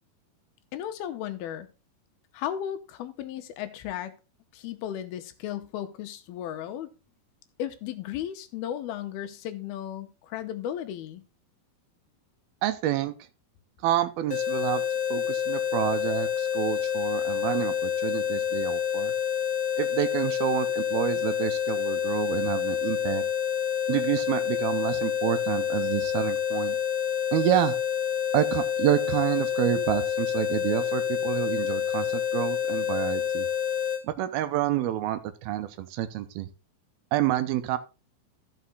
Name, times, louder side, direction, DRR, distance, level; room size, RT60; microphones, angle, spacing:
voice 1, 0.7-1.7 2.3-4.1 4.5-6.9 7.6-11.2, left 10 dB, 80° left, 2.7 m, -35 dB
voice 2, 12.6-13.1 13.8-14.8 15.1-19.1 19.8-23.2 23.9-26.8 27.3-27.8 28.3-33.5 34.0-36.5 37.1-37.8, right 13 dB, 80° right, 2.7 m, -28 dB
sound 1, 14.3-34.0, left 9 dB, 45° left, 1.8 m, -28 dB
14.0 x 5.5 x 3.9 m
omnidirectional pair, 4.4 m